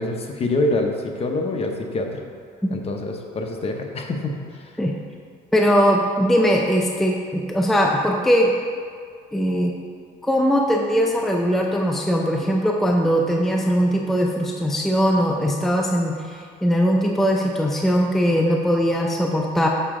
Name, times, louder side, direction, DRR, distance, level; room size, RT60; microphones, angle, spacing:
voice 1, 0.0-2.2 2.7-4.7, left 2 dB, 35° left, 3 dB, 0.8 m, -26 dB
voice 2, 5.5-8.5 9.3-9.7 10.2-19.7, equal, ahead, 0 dB, 0.5 m, -20 dB
6.8 x 5.9 x 3.7 m, 2.1 s
cardioid pair, 110°, 17 cm